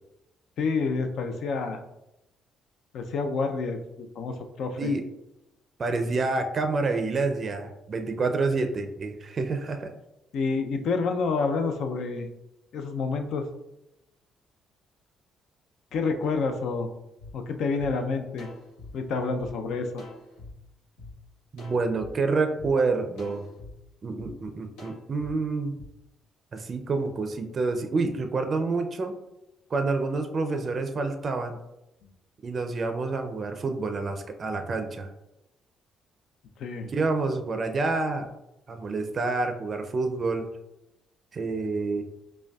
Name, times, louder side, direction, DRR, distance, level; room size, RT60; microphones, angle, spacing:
voice 1, 0.6-1.8 2.9-4.9 10.3-12.3 12.7-13.5 15.9-16.9 17.3-18.5 18.9-19.9 36.6-36.9, left 4 dB, 70° left, 6 dB, 0.4 m, -28 dB
voice 2, 5.8-9.9 21.5-23.5 24.0-25.8 26.5-29.1 29.7-31.6 32.4-35.1 36.9-38.3 38.7-40.5 41.3-42.1, right 3 dB, 45° right, 6 dB, 0.4 m, -28 dB
sound 1, 17.2-17.3 17.8-17.9 18.4-19.5 20.0-20.5 21.0-21.1 21.6-22.1 22.6-22.7 23.2-23.7 24.2-24.3 24.8-25.3 25.8-25.9, left 2 dB, 90° left, 1.1 m, -44 dB
5.1 x 2.2 x 2.3 m, 0.89 s
supercardioid pair, 70°, 0 cm